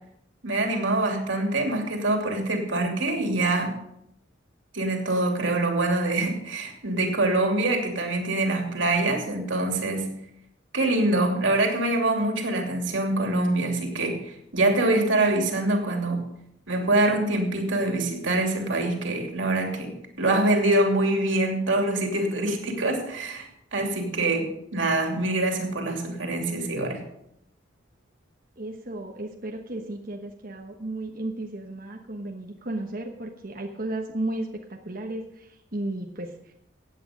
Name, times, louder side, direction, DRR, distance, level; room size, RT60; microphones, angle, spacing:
voice 1, 0.4-3.8 4.7-10.1 10.7-16.3 16.7-27.0, right 2 dB, 90° right, 2 dB, 2.8 m, -25 dB
voice 2, 28.6-36.5, right 1 dB, 50° right, 1 dB, 1.2 m, -34 dB
16.0 x 8.7 x 5.2 m, 0.78 s
head